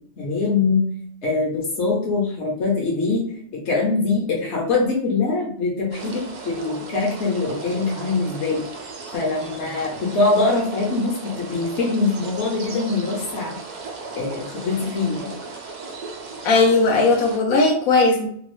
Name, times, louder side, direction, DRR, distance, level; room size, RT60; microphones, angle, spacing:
voice 1, 0.2-0.8 1.2-3.2 3.5-8.6 9.1-13.6 14.1-15.3, left 3 dB, 60° left, -3 dB, 1.0 m, -23 dB
sound 1, 5.9-17.4, right 3 dB, 70° right, 0.4 m, -36 dB
voice 2, 16.4-18.3, left 3 dB, 80° left, 2 dB, 1.1 m, -17 dB
3.0 x 2.3 x 3.0 m, 0.64 s
omnidirectional pair, 1.4 m